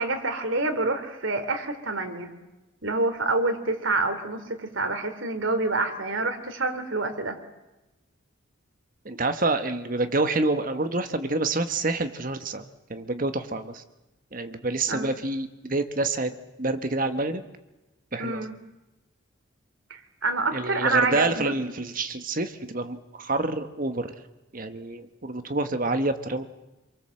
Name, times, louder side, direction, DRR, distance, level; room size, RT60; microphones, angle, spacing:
voice 1, 0.0-2.3 2.8-7.4 14.9-15.1 18.2-18.5 19.9-21.5, right 3 dB, 65° right, 7 dB, 3.2 m, -27 dB
voice 2, 9.0-12.6 12.9-13.8 14.3-17.4 18.1-18.5 20.5-24.1 24.5-26.5, right 2 dB, 40° right, 9 dB, 1.3 m, -27 dB
27.5 x 23.5 x 7.7 m, 1.0 s
head